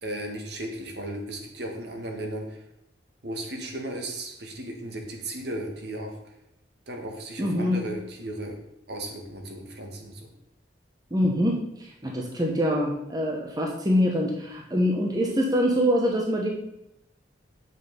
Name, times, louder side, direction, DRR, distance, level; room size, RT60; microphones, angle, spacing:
voice 1, 0.0-2.6 3.2-6.2 6.9-8.6 8.9-10.3, right 1 dB, 60° right, 2 dB, 1.9 m, -35 dB
voice 2, 7.4-7.8 11.1-16.5, equal, 20° right, -1 dB, 1.2 m, -24 dB
8.8 x 6.5 x 5.4 m, 0.86 s
head